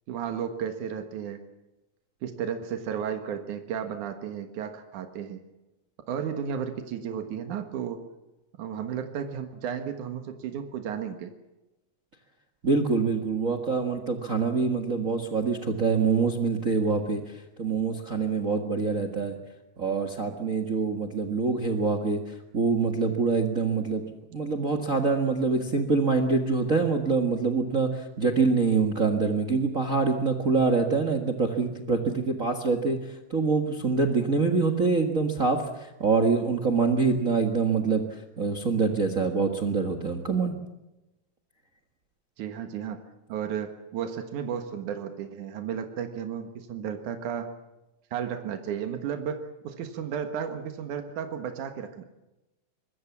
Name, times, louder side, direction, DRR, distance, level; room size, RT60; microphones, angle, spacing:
voice 1, 0.1-1.4 2.2-5.4 6.1-8.0 8.6-11.3 42.4-43.0 43.3-47.5 48.1-52.0, right 8 dB, 85° right, 6 dB, 3.0 m, -33 dB
voice 2, 12.6-19.4 19.8-24.0 24.3-33.0 33.3-40.5, right 4 dB, 35° right, 7 dB, 1.6 m, -25 dB
24.0 x 22.0 x 7.3 m, 1.0 s
omnidirectional pair, 3.4 m